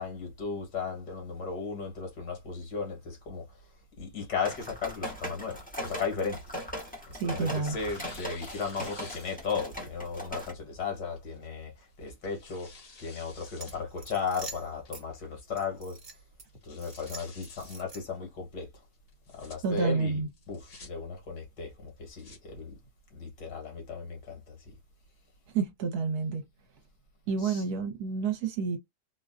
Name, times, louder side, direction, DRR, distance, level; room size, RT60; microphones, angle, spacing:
voice 1, 0.0-3.6 4.0-6.4 7.2-12.7 13.0-16.0 16.6-18.7 19.3-20.2 20.5-22.7 23.1-24.7 27.4-27.6, left 5 dB, 85° left, 2.0 m, -36 dB
sound 1, 4.4-10.5, equal, 5° left, 1.0 m, -39 dB
Tearing, 6.1-7.2 7.7-9.7 10.2-10.3 11.2-11.5 12.0-13.8 14.2-14.3 14.9-15.3 15.6-15.7 16.0-16.1 16.5-17.8 19.1-19.6 20.3-20.9 21.9-22.4, left 4 dB, 60° left, 2.1 m, -51 dB
voice 2, 7.2-7.8 19.6-20.3 25.5-26.4 27.3-28.8, right 5 dB, 65° right, 1.3 m, -29 dB
sound 2, 13.6-15.0 15.6-16.4 16.8-18.2, right 3 dB, 30° right, 1.1 m, -46 dB
3.7 x 2.2 x 2.5 m
omnidirectional pair, 1.8 m